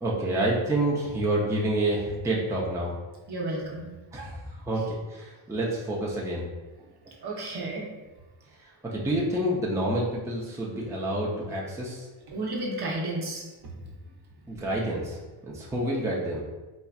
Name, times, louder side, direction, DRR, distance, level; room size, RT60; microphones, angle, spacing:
voice 1, 0.0-2.9 4.1-6.5 8.9-12.1 14.5-15.2 15.4-16.4, right 1 dB, 5° right, -4 dB, 0.6 m, -28 dB
voice 2, 3.3-3.9 7.1-7.9 12.3-13.4, right 1 dB, 50° right, -2 dB, 0.9 m, -32 dB
4.3 x 2.4 x 2.4 m, 1.2 s
cardioid pair, 80°, 50 cm